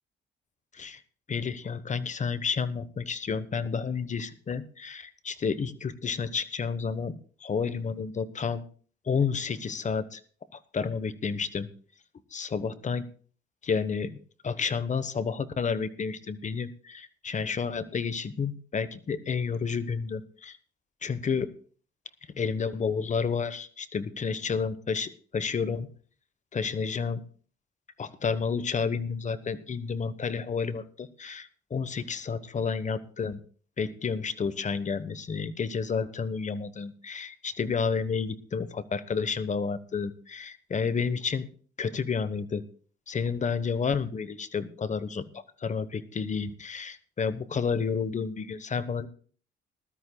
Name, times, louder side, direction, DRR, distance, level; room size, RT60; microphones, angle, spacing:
voice 1, 1.3-7.1 7.4-8.6 9.1-10.2 10.5-11.7 12.3-13.0 13.6-14.2 14.4-20.6 21.0-21.5 22.3-25.9 26.5-27.2 28.0-33.4 33.8-41.5 41.8-42.6 43.1-49.1, left 5 dB, 40° left, 14 dB, 1.1 m, -30 dB
20.0 x 12.5 x 2.3 m, 0.42 s
cardioid pair, 90°, 20 cm